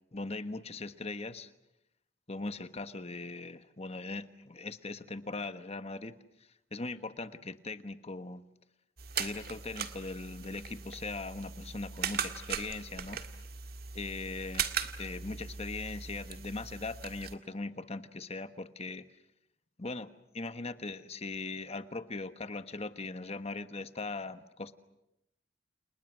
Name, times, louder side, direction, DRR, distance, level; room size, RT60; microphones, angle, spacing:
voice 1, 0.1-1.5 2.3-6.1 6.7-8.4 9.1-13.2 13.9-19.0 19.8-24.7, left 3 dB, 35° left, 11 dB, 1.2 m, -40 dB
sound 1, 9.0-17.4, right 7 dB, 55° right, 1.8 m, -39 dB
29.5 x 29.5 x 6.2 m, 0.86 s
head